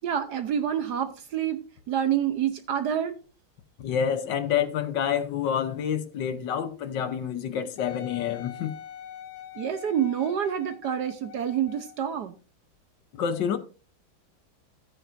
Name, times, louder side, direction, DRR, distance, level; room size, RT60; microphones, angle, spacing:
voice 1, 0.0-1.6 1.9-3.1 9.5-12.3, right 9 dB, 65° right, 1.2 m, -27 dB
voice 2, 3.8-8.7 13.2-13.6, left 8 dB, 65° left, 1.4 m, -28 dB
Wind instrument woodwind instrument, 7.8-12.1 12.7-12.8, left 10 dB, 85° left, 1.8 m, -44 dB
14.0 x 9.1 x 2.5 m
omnidirectional pair, 2.3 m